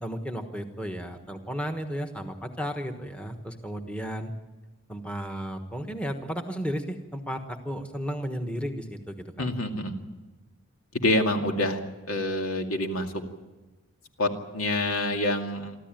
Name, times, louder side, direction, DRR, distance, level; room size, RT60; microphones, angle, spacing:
voice 1, 0.0-4.3 4.9-9.5, equal, 5° left, 5 dB, 1.2 m, -34 dB
voice 2, 9.4-10.0 10.9-11.8 12.1-13.2 14.2-15.8, left 1 dB, 80° left, 4 dB, 2.4 m, -27 dB
25.0 x 14.0 x 9.0 m, 1.2 s
head